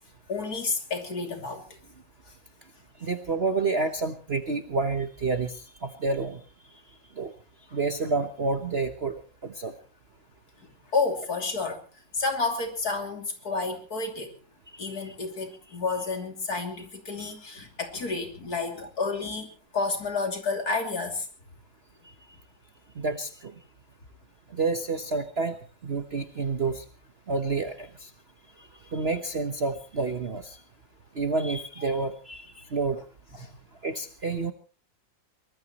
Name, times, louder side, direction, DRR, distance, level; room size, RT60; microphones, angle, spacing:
voice 1, 0.3-1.6 7.7-7.8 10.6-11.8 12.1-14.3 14.8-21.3 33.4-33.6, left 4 dB, 50° left, 3 dB, 3.4 m, -30 dB
voice 2, 3.0-6.4 7.2-7.3 7.7-9.7 14.7-15.0 22.9-23.5 24.5-26.8 27.3-28.1 28.6-30.6 31.1-33.0 33.8-34.5, right 3 dB, 40° right, 6 dB, 1.2 m, -29 dB
23.5 x 20.0 x 3.1 m, 0.37 s
omnidirectional pair, 2.1 m